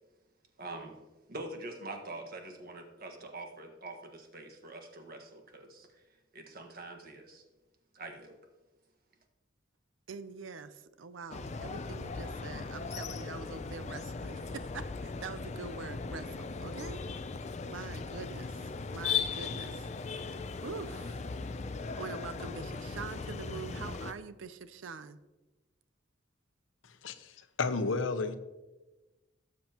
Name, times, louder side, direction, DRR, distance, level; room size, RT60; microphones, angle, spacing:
voice 1, 0.6-1.0 1.3-6.0 6.3-7.4 7.9-8.4, right 2 dB, 50° right, 3 dB, 1.6 m, -44 dB
voice 2, 10.1-17.0 17.6-19.9 20.6-21.2 21.8-25.2, right 5 dB, 80° right, 12 dB, 0.6 m, -44 dB
sound 1, 11.3-24.1, left 5 dB, 35° left, 0.5 m, -38 dB
voice 3, 26.8-28.4, left 3 dB, 85° left, 10 dB, 0.8 m, -33 dB
17.5 x 7.3 x 3.0 m, 1.1 s
head